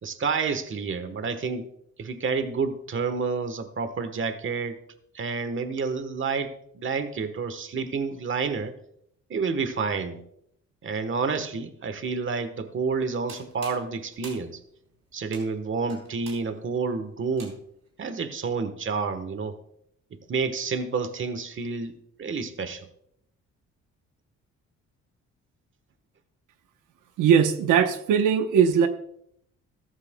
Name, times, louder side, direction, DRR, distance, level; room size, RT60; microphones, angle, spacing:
voice 1, 0.0-1.7 2.0-4.8 5.1-8.7 9.3-10.2 10.8-14.6 15.1-17.6 18.0-19.6 20.1-22.9, right 5 dB, 40° right, 10 dB, 1.3 m, -29 dB
sound 1, 13.0-17.9, right 4 dB, 60° right, 4.2 m, -47 dB
voice 2, 27.2-28.9, right 7 dB, 85° right, 7 dB, 1.0 m, -20 dB
14.0 x 14.0 x 2.3 m, 0.71 s
cardioid pair, 90°, 30 cm